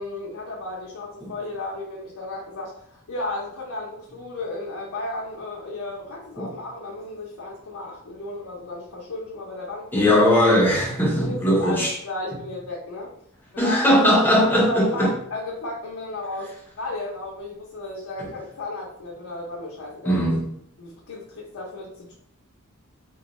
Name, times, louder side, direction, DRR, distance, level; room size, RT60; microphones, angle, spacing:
voice 1, 0.0-10.1 11.2-13.1 13.5-20.4 20.8-22.2, left 2 dB, 85° left, -4 dB, 0.6 m, -34 dB
voice 2, 9.9-12.0 13.6-15.1 18.2-18.3 20.1-20.5, equal, 10° left, -2 dB, 0.7 m, -19 dB
2.4 x 2.2 x 3.0 m, 0.72 s
head